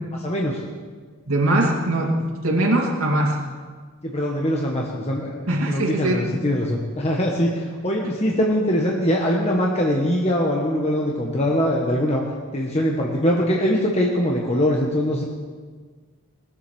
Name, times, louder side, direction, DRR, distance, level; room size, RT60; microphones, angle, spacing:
voice 1, 0.2-0.6 4.0-12.2 12.5-15.2, equal, 30° left, -2 dB, 1.4 m, -22 dB
voice 2, 1.3-3.4 5.5-6.2, right 1 dB, 70° right, -2 dB, 2.4 m, -21 dB
20.5 x 8.0 x 6.3 m, 1.5 s
head